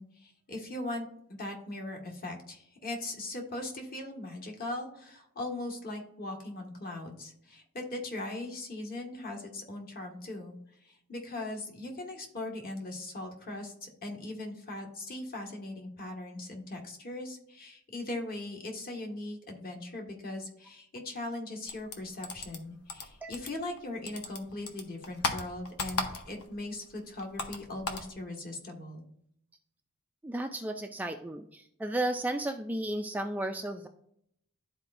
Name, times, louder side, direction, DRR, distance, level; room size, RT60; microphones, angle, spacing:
voice 1, 0.0-10.5 10.8-29.0, left 2 dB, 45° left, 1 dB, 1.5 m, -39 dB
sound 1, 21.7-23.8 24.1-26.6 26.8-28.1, left 3 dB, 90° left, 1.0 m, -36 dB
voice 2, 30.2-33.9, right 1 dB, 10° right, 5 dB, 0.3 m, -33 dB
12.0 x 4.3 x 2.5 m, 0.72 s
head